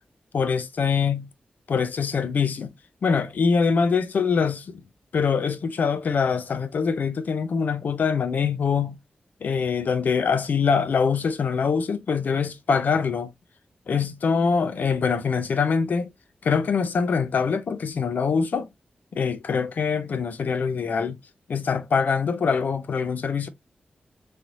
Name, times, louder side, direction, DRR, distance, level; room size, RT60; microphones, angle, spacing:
voice 1, 0.3-1.3 1.7-2.7 3.0-4.8 5.1-9.0 9.4-13.3 13.9-16.1 16.4-18.7 19.1-21.2 21.5-23.5, left 5 dB, 65° left, 0.4 m, -24 dB
3.2 x 3.0 x 2.5 m
wide cardioid pair, 160°, 3 cm